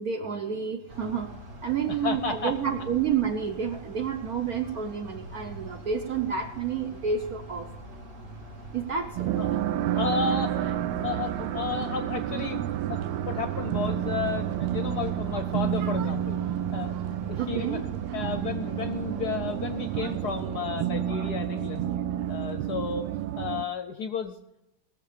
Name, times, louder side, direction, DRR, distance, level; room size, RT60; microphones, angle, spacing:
voice 1, 0.0-1.3 1.6-7.7 8.7-9.3 17.4-17.8, right 7 dB, 60° right, 5 dB, 1.0 m, -29 dB
sound 1, 0.9-20.4, right 1 dB, 30° right, 1.2 m, -44 dB
voice 2, 2.0-2.5 9.4-9.5 9.9-10.7 11.0-12.6 12.9-13.0 13.3-16.4 16.7-17.8 18.1-21.9 22.3-23.1 23.4-24.4, left 6 dB, 65° left, 8 dB, 1.0 m, -32 dB
sound 2, 9.2-23.6, right 11 dB, 80° right, 1.4 m, -30 dB
19.0 x 7.0 x 4.9 m, 0.88 s
omnidirectional pair, 2.3 m